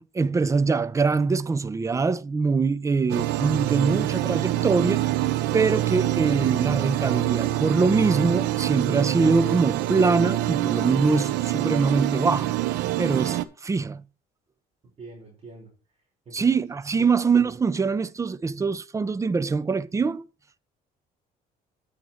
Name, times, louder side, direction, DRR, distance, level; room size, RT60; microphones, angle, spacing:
voice 1, 0.0-5.1 5.5-12.6 13.0-14.0 16.3-20.2, right 4 dB, 20° right, 0.5 m, -23 dB
sound 1, 3.1-13.4, right 14 dB, 85° right, 0.7 m, -25 dB
voice 2, 15.0-15.7 16.2-16.5 17.0-17.1, right 3 dB, 40° right, 5.0 m, -44 dB
9.3 x 6.6 x 4.3 m
cardioid pair, 110°, 17 cm